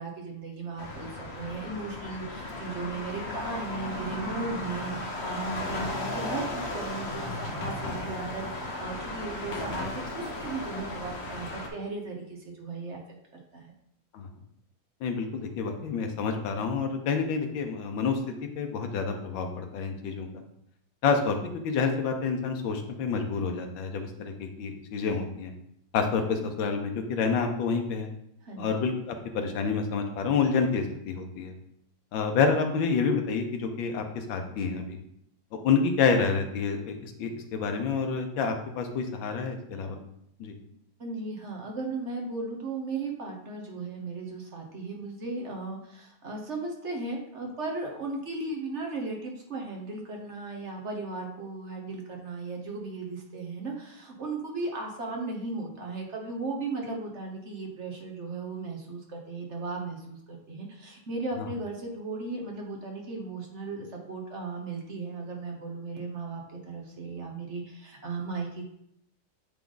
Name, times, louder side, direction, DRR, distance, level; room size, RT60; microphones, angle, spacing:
voice 1, 0.0-13.0 13.5-13.7 28.4-28.8 41.0-68.6, right 3 dB, 45° right, 1 dB, 1.1 m, -36 dB
sound 1, 0.8-11.7, left 2 dB, 40° left, 1.1 m, -35 dB
voice 2, 15.0-18.2 18.6-20.4 21.0-25.5 25.9-28.1 28.6-31.5 32.1-35.0 35.6-40.0 40.4-40.6 61.4-61.5, left 5 dB, 80° left, 4 dB, 1.6 m, -28 dB
8.8 x 3.5 x 3.9 m, 0.75 s
omnidirectional pair, 2.1 m